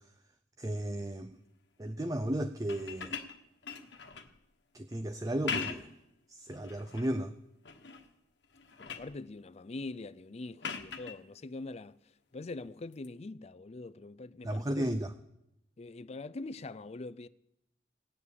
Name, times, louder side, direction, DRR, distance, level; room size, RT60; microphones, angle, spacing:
voice 1, 0.6-1.3 1.8-3.2 4.7-5.9 6.3-7.3 14.4-15.1, right 1 dB, 20° right, 0.6 m, -34 dB
sound 1, 2.6-4.4 5.3-6.0 6.5-7.1 7.6-8.1 8.4-9.2 10.6-11.2 12.9-13.1, left 6 dB, 75° left, 1.2 m, -40 dB
voice 2, 8.8-12.0 12.3-14.9 15.8-17.3, left 2 dB, 35° left, 0.5 m, -43 dB
19.0 x 7.2 x 8.4 m
head